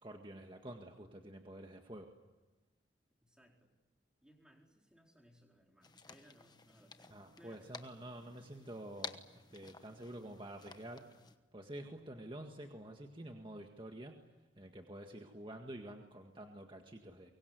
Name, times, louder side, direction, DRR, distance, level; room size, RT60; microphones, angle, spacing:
voice 1, 0.0-2.1 7.1-11.0 11.5-14.2 14.6-17.3, right 1 dB, 25° right, 3 dB, 1.8 m, -49 dB
voice 2, 3.2-3.7 4.2-7.7, equal, 5° right, 1 dB, 4.4 m, -64 dB
sound 1, 5.8-11.4, left 4 dB, 20° left, 1.2 m, -53 dB
24.5 x 23.0 x 9.5 m, 1.1 s
head